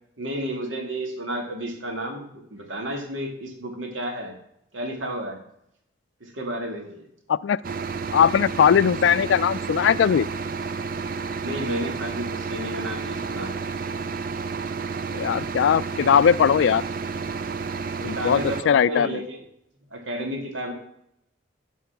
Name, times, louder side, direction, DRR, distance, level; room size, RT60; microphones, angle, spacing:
voice 1, 0.2-4.4 4.7-5.4 6.2-7.1 11.4-13.7 18.1-19.5 19.9-20.7, right 1 dB, 85° right, 2 dB, 2.2 m, -32 dB
sound 1, 7.6-18.6, right 4 dB, 45° right, 0.5 m, -31 dB
voice 2, 8.1-10.3 15.1-16.8 18.0-18.4 18.7-19.2, left 8 dB, 70° left, 19 dB, 0.3 m, -19 dB
11.5 x 4.6 x 5.9 m, 0.76 s
head